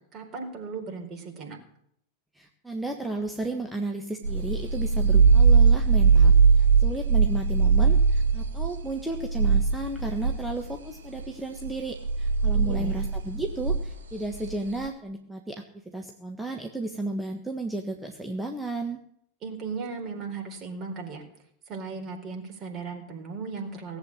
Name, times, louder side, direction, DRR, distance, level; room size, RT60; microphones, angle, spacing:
voice 1, 0.1-1.6 12.5-13.0 19.4-21.2 21.7-24.0, right 4 dB, 30° right, 3 dB, 4.3 m, -36 dB
voice 2, 2.3-19.0, right 2 dB, 5° right, 2 dB, 1.5 m, -33 dB
sound 1, 4.2-11.3 11.6-14.9, right 5 dB, 70° right, 2.3 m, -21 dB
18.5 x 8.2 x 8.9 m, 0.69 s
figure-of-eight pair, 90°, 0 cm